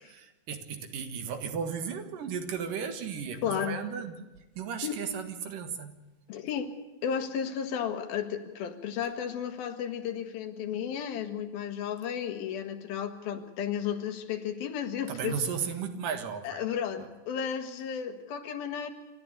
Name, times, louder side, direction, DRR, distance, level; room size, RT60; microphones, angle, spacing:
voice 1, 0.0-4.2 4.6-6.0 15.1-16.6 16.9-17.1, right 7 dB, 70° right, 8 dB, 3.1 m, -35 dB
voice 2, 3.4-3.8 4.8-4.9 6.3-6.8 7.0-15.4 16.4-18.9, left 8 dB, 85° left, 7 dB, 3.4 m, -33 dB
27.5 x 13.0 x 8.1 m, 1.1 s
omnidirectional pair, 4.2 m